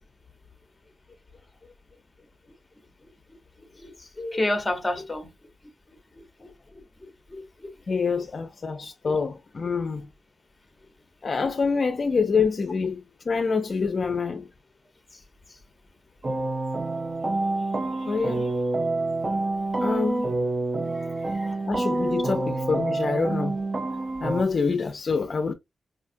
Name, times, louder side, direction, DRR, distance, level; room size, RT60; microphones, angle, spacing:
voice 1, 3.6-5.3 5.9-7.7 8.1-8.2 15.1-15.2 15.5-15.6 20.9-21.6, left 1 dB, 15° left, 1.0 m, -33 dB
voice 2, 7.9-10.1 11.2-14.5 17.9-18.5 19.8-20.3 21.7-23.6 24.2-25.5, left 5 dB, 45° left, 0.5 m, -26 dB
sound 1, 16.2-24.4, right 2 dB, 30° right, 0.5 m, -27 dB
4.9 x 2.3 x 2.6 m
wide cardioid pair, 115°, 0 cm